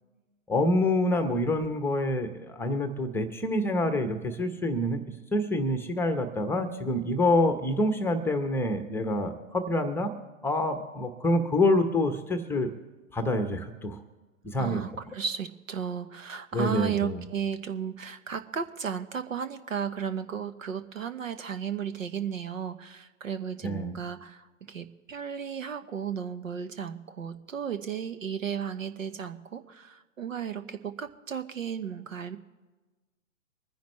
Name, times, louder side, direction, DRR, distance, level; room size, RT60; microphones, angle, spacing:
voice 1, 0.5-5.0 5.3-10.1 10.4-12.7 13.1-14.0 14.4-14.8 16.5-17.2 23.6-24.0, left 1 dB, 5° left, 7 dB, 0.9 m, -27 dB
voice 2, 14.6-32.4, right 7 dB, 75° right, 10 dB, 1.2 m, -34 dB
24.5 x 10.5 x 3.2 m, 1.2 s
figure-of-eight pair, 120°, 40 cm